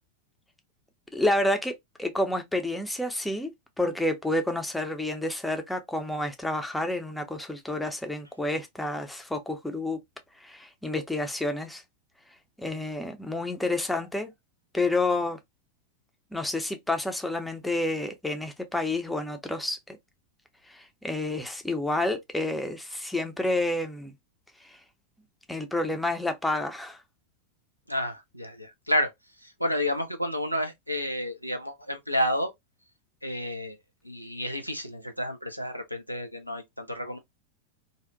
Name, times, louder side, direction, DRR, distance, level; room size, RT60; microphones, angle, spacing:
voice 1, 1.1-1.7 2.0-3.5 3.8-10.0 10.4-11.8 12.6-14.3 14.7-15.4 16.3-20.0 20.7-24.1 25.5-27.0, left 2 dB, 5° left, 0.5 m, -29 dB
voice 2, 27.9-29.1 29.6-32.5 33.2-33.8 34.0-37.2, left 1 dB, 90° left, 0.5 m, -30 dB
2.6 x 2.1 x 2.5 m
figure-of-eight pair, 90°, 0 cm